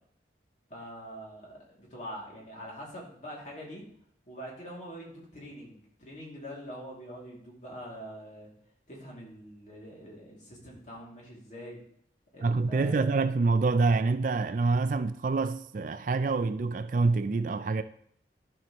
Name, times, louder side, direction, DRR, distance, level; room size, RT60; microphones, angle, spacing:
voice 1, 0.7-3.9 4.3-8.5 8.9-11.8 12.3-13.3, equal, 40° left, 2.7 m, -44 dB
voice 2, 12.4-17.8, right 3 dB, 45° right, 0.4 m, -26 dB
12.5 x 5.9 x 3.1 m
head